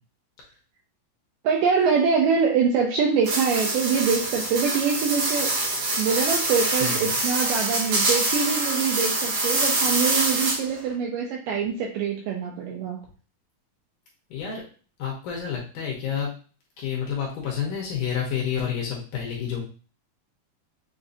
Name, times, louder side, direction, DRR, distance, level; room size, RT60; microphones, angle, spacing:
voice 1, 1.4-5.6 6.0-13.0, right 6 dB, 85° right, 1 dB, 2.0 m, -24 dB
sound 1, 3.2-10.8, right 2 dB, 70° right, 2.7 m, -25 dB
voice 2, 6.8-7.1 14.3-14.6 15.0-16.3 16.8-19.6, left 8 dB, 70° left, -2 dB, 2.1 m, -29 dB
6.9 x 2.7 x 2.6 m, 0.38 s
omnidirectional pair, 4.4 m